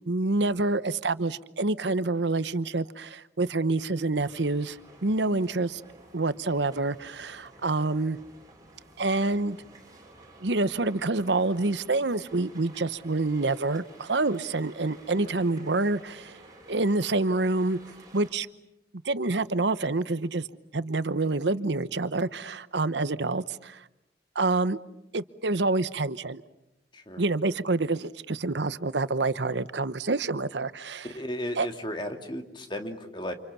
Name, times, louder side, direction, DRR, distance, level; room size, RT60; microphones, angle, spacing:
voice 1, 0.1-5.8 6.1-8.2 9.0-9.6 10.4-16.4 16.7-17.8 18.1-18.5 19.0-20.5 20.7-23.8 24.3-24.8 25.1-26.4 27.2-31.1 31.6-31.7, right 2 dB, 85° right, 14 dB, 1.0 m, -27 dB
sound 1, 4.1-18.3, right 2 dB, 20° right, 6.5 m, -52 dB
voice 2, 15.1-15.4 26.9-27.3 31.0-33.3, equal, 25° left, 5 dB, 2.5 m, -35 dB
29.5 x 28.0 x 7.1 m, 0.87 s
head